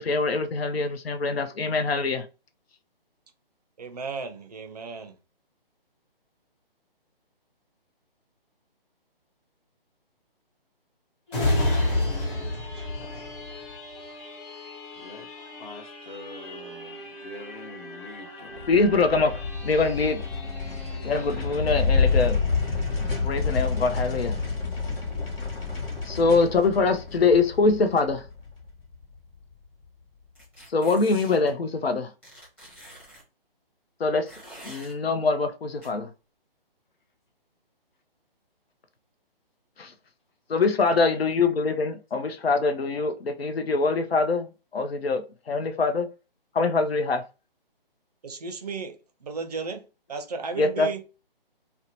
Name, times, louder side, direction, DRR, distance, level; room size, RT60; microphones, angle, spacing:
voice 1, 0.0-2.3 18.7-20.2 21.0-22.4 23.2-24.4 26.0-28.3 30.7-32.1 34.0-34.3 34.6-36.1 39.8-39.9 40.5-46.1 46.5-47.2 50.6-50.9, left 3 dB, 90° left, 0.6 m, -24 dB
voice 2, 3.8-5.2 48.2-51.0, right 4 dB, 45° right, 0.5 m, -35 dB
sound 1, 11.3-24.6 25.1-25.2, left 1 dB, 30° left, 1.0 m, -33 dB
voice 3, 11.7-12.7 14.9-15.3 15.6-18.7, left 2 dB, 50° left, 0.8 m, -44 dB
sound 2, 18.6-29.1, left 4 dB, 75° left, 1.1 m, -28 dB
sound 3, 30.3-31.5 32.2-33.2 34.3-34.9 35.8-35.9, right 1 dB, 5° left, 0.6 m, -46 dB
2.7 x 2.0 x 2.8 m
figure-of-eight pair, 150°, 30 cm